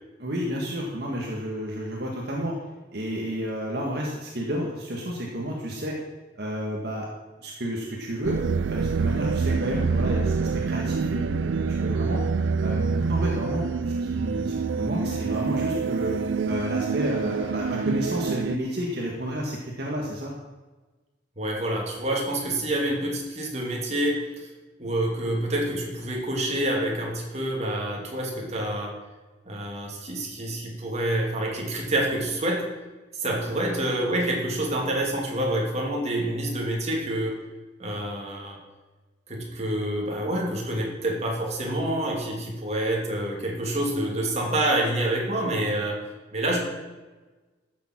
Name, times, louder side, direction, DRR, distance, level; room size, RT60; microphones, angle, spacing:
voice 1, 0.2-2.5 2.9-6.0 6.4-7.1 7.4-8.4 8.7-11.5 11.8-12.2 12.6-13.7 14.0-16.1 16.4-20.3, equal, 55° right, -1 dB, 1.7 m, -31 dB
sound 1, 8.2-18.6, right 5 dB, 90° right, 0.4 m, -26 dB
voice 2, 21.4-24.5 24.8-28.9 29.4-32.7 33.1-37.4 37.8-38.6 39.3-46.0 46.3-46.6, right 1 dB, 35° right, -1 dB, 2.6 m, -27 dB
13.5 x 7.1 x 6.0 m, 1.2 s
head